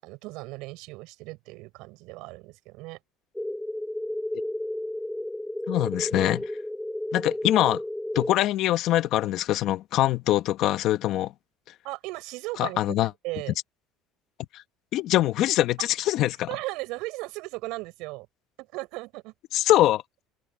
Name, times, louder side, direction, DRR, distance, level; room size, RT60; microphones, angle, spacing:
voice 1, 0.0-3.0 11.8-13.0 13.2-13.6 16.5-18.3 18.6-19.3, right 22 dB, 75° right, 6.4 m, -36 dB
sound 1, 3.3-8.3, left 1 dB, 5° left, 6.2 m, -32 dB
voice 2, 5.7-6.4 7.1-7.8 8.1-11.3 12.6-13.1 14.5-14.6 14.9-16.5 19.5-20.0, left 14 dB, 60° left, 1.7 m, -23 dB
supercardioid pair, 110°, 0 cm